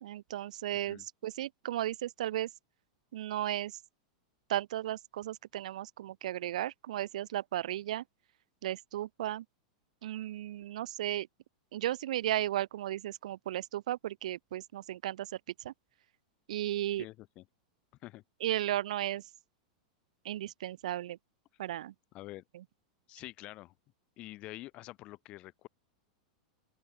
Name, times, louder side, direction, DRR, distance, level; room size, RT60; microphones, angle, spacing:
voice 1, 0.0-2.5 3.1-3.8 4.5-8.0 8.6-9.4 10.0-11.3 11.7-15.3 15.6-15.7 16.5-17.1 18.4-19.2 20.2-21.2 21.6-21.9 22.5-22.6, right 13 dB, 70° right, 0.8 m, -35 dB
voice 2, 17.0-17.4 18.0-18.2 22.1-22.4 23.1-23.7 24.2-25.7, left 18 dB, 25° left, 0.9 m, -47 dB
open air
supercardioid pair, 175°, 4 cm